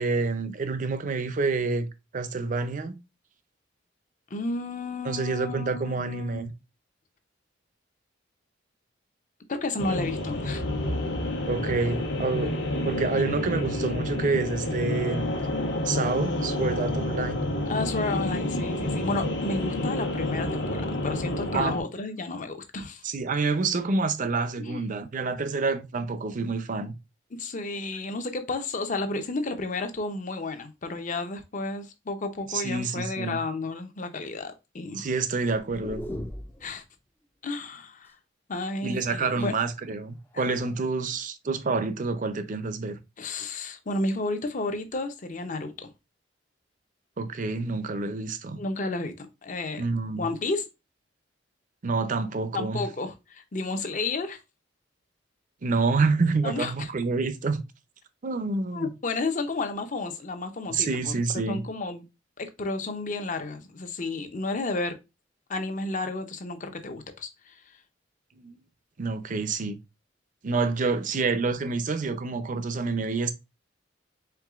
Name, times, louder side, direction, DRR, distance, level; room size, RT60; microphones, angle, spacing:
voice 1, 0.0-3.0 5.1-6.5 11.5-12.5 12.8-15.3 15.8-17.4 21.5-21.8 23.0-27.0 32.5-33.4 34.9-36.1 38.8-43.0 47.2-48.6 49.8-50.3 51.8-52.8 55.6-57.6 58.2-58.9 60.7-61.6 68.4-68.6 69.0-69.8 70.4-73.3, right 4 dB, 45° right, 0.5 m, -28 dB
voice 2, 4.3-6.4 9.5-10.6 17.7-23.0 24.6-24.9 27.3-35.1 36.6-36.8 37.4-38.1 38.5-39.5 40.3-40.4 43.2-45.9 48.6-49.8 50.2-50.6 52.5-54.4 56.4-56.9 58.7-61.1 61.5-62.0 62.4-65.0 65.5-67.6, left 3 dB, 45° left, 0.7 m, -32 dB
sound 1, 9.8-21.8, left 1 dB, 70° left, 1.2 m, -29 dB
sound 2, 35.5-36.8 38.6-39.7 40.5-40.9, left 1 dB, 10° left, 0.4 m, -39 dB
4.6 x 3.7 x 2.4 m
head